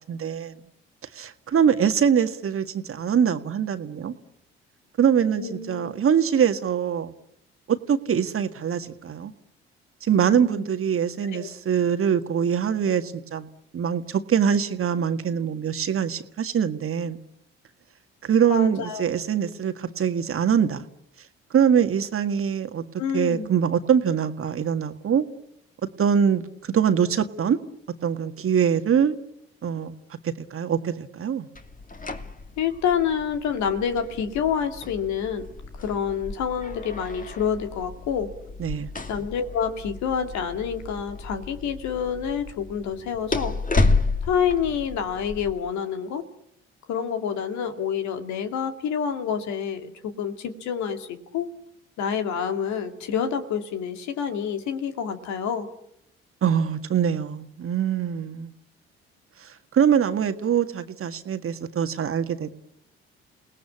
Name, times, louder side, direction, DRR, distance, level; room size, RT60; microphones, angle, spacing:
voice 1, 0.1-0.5 1.1-4.1 5.0-7.1 7.7-9.3 10.0-13.5 13.7-17.2 18.2-20.9 21.5-22.8 23.1-25.3 26.0-27.6 28.0-29.2 29.6-29.9 30.2-31.5 38.6-38.9 56.4-58.5 59.4-59.5 59.7-62.5, right 8 dB, 45° right, 9 dB, 1.8 m, -23 dB
voice 2, 5.3-6.0 10.4-10.7 11.3-11.5 18.5-19.0 23.0-23.5 32.6-35.4 35.7-38.3 39.1-43.5 44.2-46.2 46.9-51.5 52.0-55.7, left 7 dB, 65° left, 7 dB, 2.4 m, -28 dB
sound 1, 31.5-45.5, left 3 dB, 25° left, 2.6 m, -31 dB
29.5 x 18.5 x 8.7 m, 0.80 s
hypercardioid pair, 50°, 31 cm